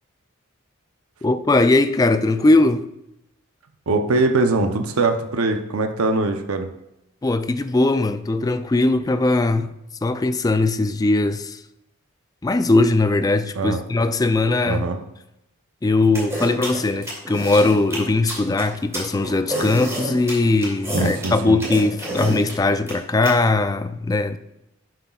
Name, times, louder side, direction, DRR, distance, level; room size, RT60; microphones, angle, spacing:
voice 1, 1.2-2.8 7.2-9.7 10.0-11.6 12.4-14.9 15.8-24.4, left 2 dB, 15° left, 0.3 m, -20 dB
voice 2, 3.9-6.7 13.5-13.8 14.6-15.0 20.9-21.6, right 3 dB, 80° right, 0.7 m, -22 dB
sound 1, 16.1-23.3, right 1 dB, 15° right, 2.4 m, -28 dB
11.0 x 7.7 x 2.4 m
head